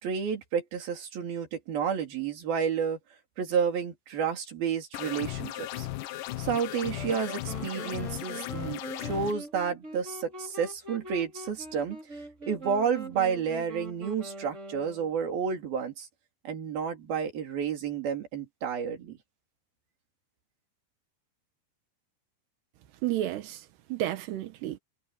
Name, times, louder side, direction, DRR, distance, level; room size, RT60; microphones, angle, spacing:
voice 1, 0.0-3.0 3.4-5.9 6.4-12.0 12.5-16.1 16.5-19.2, right 7 dB, 65° right, 5.1 m, -31 dB
sound 1, 4.9-9.3, left 16 dB, 75° left, 2.0 m, -36 dB
sound 2, 6.9-15.4, right 2 dB, 15° right, 5.3 m, -43 dB
voice 2, 23.0-24.8, right 13 dB, 90° right, 3.4 m, -32 dB
omnidirectional pair, 4.7 m